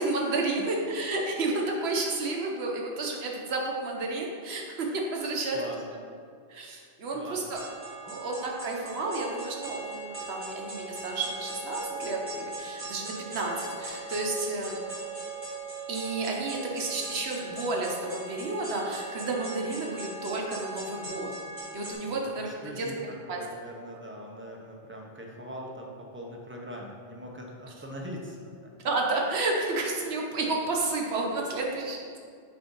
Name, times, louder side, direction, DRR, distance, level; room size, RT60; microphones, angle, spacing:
voice 1, 0.0-5.6 6.5-7.6 8.0-14.8 15.9-21.3 21.7-23.4 28.8-32.2, right 2 dB, 70° right, 0 dB, 1.1 m, -31 dB
sound 1, 7.5-21.9, right 3 dB, 50° right, 1.8 m, -39 dB
voice 2, 22.4-28.5, equal, 15° right, -1 dB, 0.5 m, -41 dB
7.3 x 2.6 x 5.3 m, 2.2 s
omnidirectional pair, 1.1 m